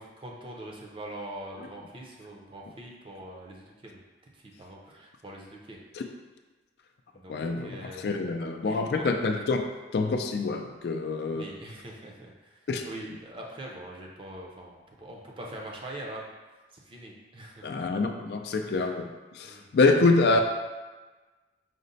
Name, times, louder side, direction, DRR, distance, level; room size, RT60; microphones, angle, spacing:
voice 1, 0.0-4.0 4.3-5.8 7.1-8.3 8.6-9.1 11.3-16.3 16.8-17.9 18.6-18.9 19.4-19.7, right 1 dB, 30° right, -1 dB, 0.5 m, -43 dB
voice 2, 7.3-9.6 9.9-11.5 12.7-12.8 17.6-20.4, left 3 dB, 60° left, 4 dB, 0.3 m, -26 dB
5.1 x 2.1 x 3.9 m, 1.3 s
head